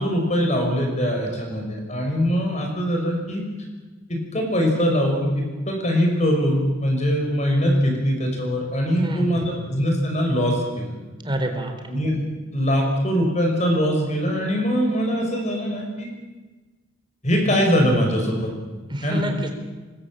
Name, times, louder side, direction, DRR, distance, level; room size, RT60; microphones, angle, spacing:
voice 1, 0.0-3.4 4.1-10.9 11.9-12.2 12.5-16.1 17.2-18.5 19.0-19.2, equal, 35° left, 2 dB, 6.2 m, -22 dB
voice 2, 9.0-9.5 11.2-11.7 18.9-19.5, right 1 dB, 25° right, 5 dB, 3.8 m, -27 dB
25.0 x 21.0 x 9.0 m, 1.3 s
head